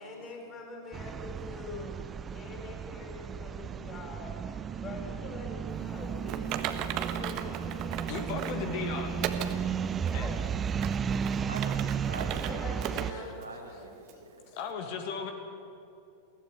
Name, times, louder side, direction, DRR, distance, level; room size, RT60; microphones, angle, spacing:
voice 1, 0.0-2.0 2.3-4.4 4.8-9.0 9.9-10.4 12.3-13.4, left 3 dB, 30° left, 1 dB, 6.0 m, -45 dB
sound 1, 0.9-13.1, right 7 dB, 20° right, 0.6 m, -34 dB
Typing, 6.3-8.6 9.2-9.6 10.1-10.2 10.7-12.5 12.8-13.1 13.4-13.5 14.1-14.2, right 11 dB, 40° right, 1.4 m, -36 dB
voice 2, 8.1-9.1 10.1-10.3 13.1-13.2 14.5-15.3, left 6 dB, 45° left, 5 dB, 2.1 m, -36 dB
voice 3, 9.4-9.7 11.5-14.4, right 2 dB, 80° right, -1 dB, 3.5 m, -44 dB
22.0 x 16.0 x 8.3 m, 2.6 s
figure-of-eight pair, 90°, 0 cm